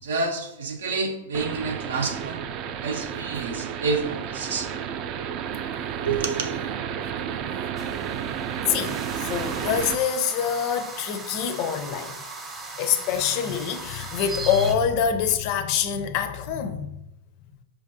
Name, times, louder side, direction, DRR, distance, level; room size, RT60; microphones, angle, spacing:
voice 1, 0.0-2.4 2.8-4.7 6.0-6.5, right 4 dB, 85° right, 0.7 m, -28 dB
sound 1, 1.3-10.0, right 8 dB, 40° right, 0.3 m, -32 dB
sound 2, 7.8-14.7, right 3 dB, 20° right, 0.7 m, -38 dB
voice 2, 8.7-12.2 12.8-17.0, left 8 dB, 50° left, 0.4 m, -25 dB
4.7 x 2.5 x 2.7 m
hypercardioid pair, 125°, 0 cm